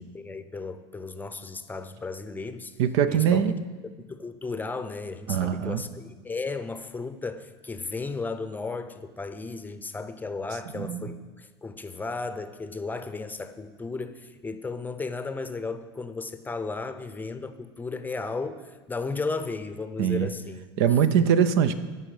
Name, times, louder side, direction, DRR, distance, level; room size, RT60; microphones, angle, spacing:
voice 1, 0.1-2.7 3.1-3.5 4.0-20.7, left 3 dB, 10° left, 9 dB, 0.7 m, -34 dB
voice 2, 2.8-3.5 5.3-5.8 10.7-11.1 20.0-20.3 20.8-21.7, right 8 dB, 65° right, 12 dB, 0.7 m, -22 dB
15.0 x 5.6 x 5.0 m, 1.3 s
hypercardioid pair, 100°, 14 cm